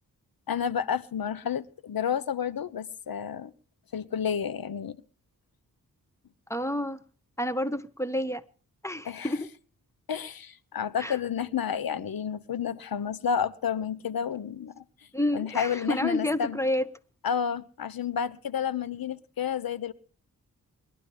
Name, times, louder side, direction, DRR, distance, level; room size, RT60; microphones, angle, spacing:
voice 1, 0.5-3.5 3.9-5.0 9.1-9.3 10.1-14.8 15.3-16.6 17.2-19.9, left 7 dB, 70° left, 1.1 m, -30 dB
voice 2, 6.5-7.0 7.4-8.4 8.8-9.5 11.0-11.2 15.1-16.9, left 1 dB, 10° left, 1.4 m, -29 dB
22.5 x 11.5 x 3.4 m
cardioid pair, 55°, 37 cm